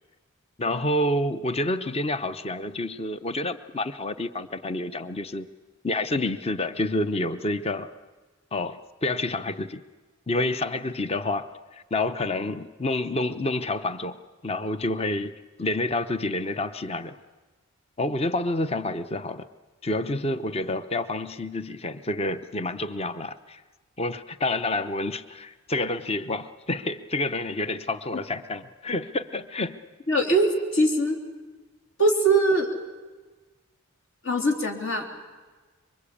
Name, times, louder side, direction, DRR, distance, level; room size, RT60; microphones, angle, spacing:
voice 1, 0.6-5.5 5.8-7.9 8.5-9.8 10.3-17.1 18.0-19.5 19.8-23.6 24.0-29.8, left 2 dB, 30° left, 12 dB, 0.8 m, -28 dB
voice 2, 30.1-31.2 32.0-32.7 34.2-35.0, right 2 dB, 60° left, 2 dB, 3.5 m, -22 dB
26.0 x 24.0 x 8.6 m, 1.3 s
head